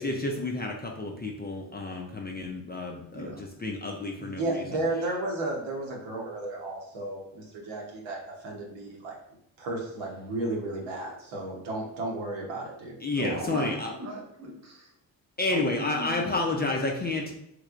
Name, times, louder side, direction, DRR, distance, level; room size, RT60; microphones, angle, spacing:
voice 1, 0.0-4.6 13.0-13.9 15.4-17.3, left 2 dB, 20° left, 0 dB, 0.5 m, -30 dB
voice 2, 3.1-3.4 13.2-14.9 15.5-16.4, right 1 dB, 35° right, 0 dB, 1.1 m, -37 dB
voice 3, 4.2-9.2 9.6-13.0, right 2 dB, 80° right, -2 dB, 1.0 m, -33 dB
3.1 x 3.1 x 2.5 m, 0.77 s
cardioid pair, 70°, 45 cm